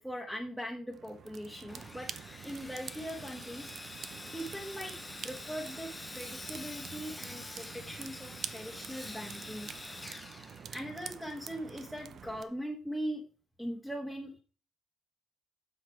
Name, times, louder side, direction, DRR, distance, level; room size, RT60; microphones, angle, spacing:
voice 1, 0.0-2.1 2.4-3.7 4.2-9.7 10.7-13.2 13.6-14.4, equal, 5° right, -1 dB, 1.4 m, -40 dB
sound 1, 0.9-12.4, right 7 dB, 60° right, 0.6 m, -47 dB
Sawing, 1.7-11.1, left 2 dB, 20° left, 0.9 m, -46 dB
7.6 x 5.8 x 4.6 m, 0.37 s
cardioid pair, 90°, 0 cm